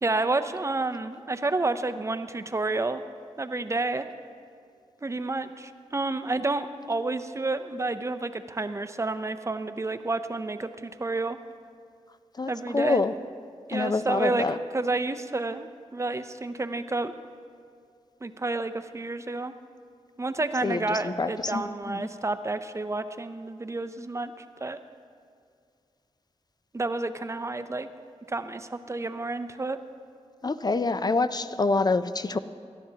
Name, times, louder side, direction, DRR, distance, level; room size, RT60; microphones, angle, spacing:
voice 1, 0.0-3.0 3.4-4.1 5.0-11.4 12.5-13.0 13.7-14.5 14.7-17.1 18.2-19.5 20.2-24.3 24.6-24.8 26.7-27.9 28.3-29.8, right 2 dB, 25° right, 10 dB, 0.5 m, -30 dB
voice 2, 12.4-13.1 13.7-14.6 20.6-22.1 30.4-32.4, left 3 dB, 35° left, 12 dB, 0.4 m, -26 dB
17.0 x 11.5 x 2.8 m, 2.2 s
cardioid pair, 60°, 12 cm